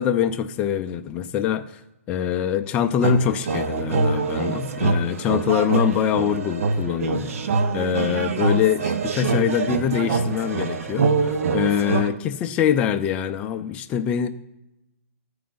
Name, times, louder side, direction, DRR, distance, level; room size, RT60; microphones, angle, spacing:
voice 1, 0.0-1.7 2.1-7.3 7.7-14.3, left 9 dB, 15° left, 7 dB, 0.3 m, -24 dB
sound 1, 2.9-11.9, right 2 dB, 20° right, 2.4 m, -44 dB
sound 2, 3.0-12.1, right 4 dB, 65° right, 0.7 m, -24 dB
13.5 x 4.7 x 3.9 m, 0.94 s
hypercardioid pair, 155°, 8 cm